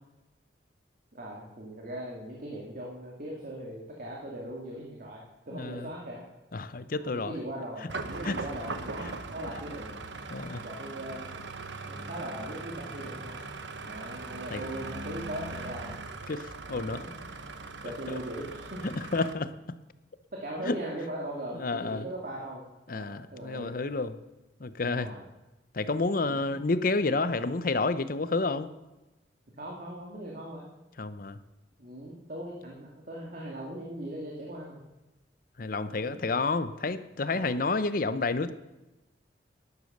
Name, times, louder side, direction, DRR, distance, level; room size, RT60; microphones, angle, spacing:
voice 1, 1.1-6.2 6.9-9.9 10.6-11.3 11.9-13.4 13.8-16.0 16.7-17.1 17.8-18.9 20.3-23.8 24.8-25.2 26.3-26.6 29.6-30.7 31.8-34.8 36.0-36.2 37.3-37.7, right 1 dB, 50° right, -2 dB, 2.3 m, -40 dB
voice 2, 5.5-5.9 6.5-7.3 8.2-8.4 10.3-10.6 14.5-14.6 16.3-17.1 18.1-18.2 18.8-19.5 20.7-20.8 21.5-22.0 22.9-24.1 24.6-25.1 25.7-28.7 31.0-31.4 35.6-38.5, left 3 dB, 50° left, 13 dB, 0.7 m, -30 dB
sound 1, 7.9-19.3, right 3 dB, 80° right, 1.1 m, -40 dB
12.0 x 11.0 x 6.6 m, 1.0 s
head